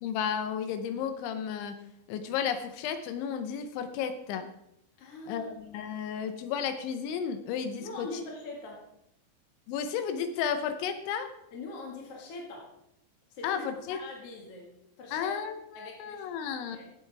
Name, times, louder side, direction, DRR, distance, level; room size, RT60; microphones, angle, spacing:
voice 1, 0.0-4.5 5.3-8.1 9.7-11.3 13.4-14.0 15.1-16.8, left 7 dB, 80° left, 8 dB, 3.2 m, -33 dB
voice 2, 5.0-5.5 5.9-6.2 7.8-8.8 11.5-12.7 13.3-15.3 15.7-16.3 16.6-16.9, left 2 dB, 50° left, -1 dB, 1.8 m, -43 dB
17.5 x 8.2 x 3.4 m, 0.79 s
omnidirectional pair, 5.4 m